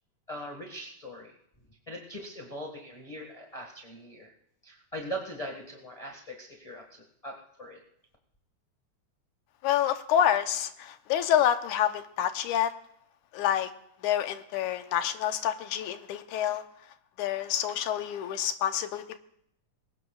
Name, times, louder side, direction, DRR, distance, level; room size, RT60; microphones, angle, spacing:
voice 1, 0.3-1.3 1.9-4.3 4.6-7.8, equal, 20° left, 0 dB, 1.0 m, -41 dB
voice 2, 9.6-12.7 13.3-13.7 14.0-16.6 17.2-19.2, left 10 dB, 85° left, 9 dB, 2.3 m, -27 dB
21.5 x 18.5 x 2.4 m, 0.74 s
omnidirectional pair, 3.5 m